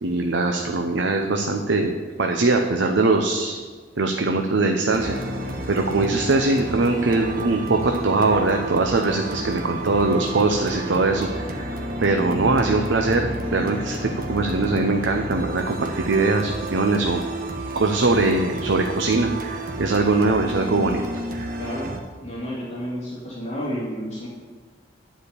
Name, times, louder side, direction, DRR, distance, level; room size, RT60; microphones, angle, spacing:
voice 1, 0.0-3.6 4.0-5.2 5.7-11.4 12.0-17.2 17.8-19.3 19.8-21.0, right 3 dB, 70° right, 3 dB, 0.7 m, -21 dB
sound 1, 4.9-22.0, right 1 dB, 50° right, 1.4 m, -31 dB
voice 2, 21.6-21.9 22.2-24.3, equal, 35° left, -6 dB, 2.7 m, -31 dB
11.0 x 5.1 x 8.2 m, 1.5 s
head